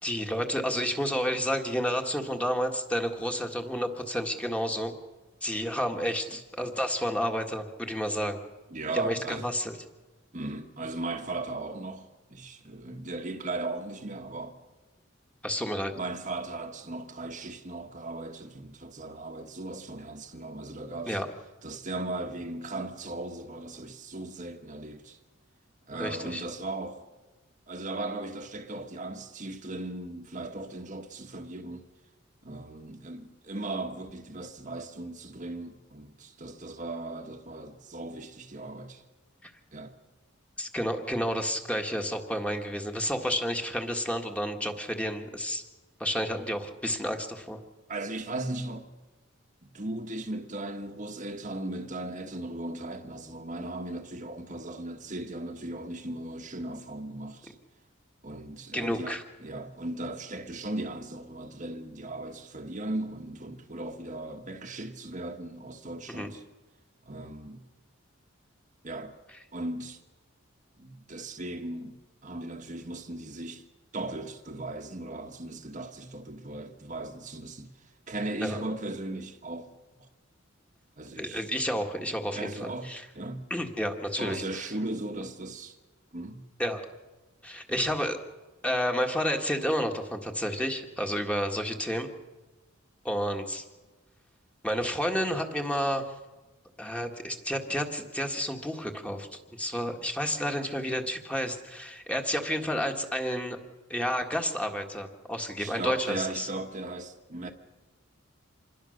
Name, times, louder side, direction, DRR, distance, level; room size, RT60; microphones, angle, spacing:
voice 1, 0.0-4.9 5.4-8.4 8.9-9.7 15.4-15.9 21.1-21.3 25.9-26.4 39.4-39.5 40.6-45.6 46.0-47.6 58.7-59.2 66.2-66.3 78.4-78.6 81.2-83.1 83.5-84.6 86.6-86.8 87.4-88.2 88.6-92.1 93.0-93.6 94.6-96.0 96.8-99.3 99.6-103.6 103.9-106.5, equal, 5° left, 1.8 m, -30 dB
voice 2, 8.7-9.5 10.3-14.5 16.0-21.2 21.6-25.2 25.9-27.1 27.7-31.9 32.4-39.0 39.7-39.9 47.9-48.9 49.6-57.6 58.2-66.4 67.0-67.7 68.8-69.2 69.5-70.0 70.8-73.7 73.9-79.7 80.0-80.1 81.0-81.5 82.3-83.4 84.2-85.8 86.1-86.5 87.7-87.8 105.6-107.5, right 2 dB, 40° right, 1.4 m, -37 dB
27.0 x 21.0 x 6.6 m
head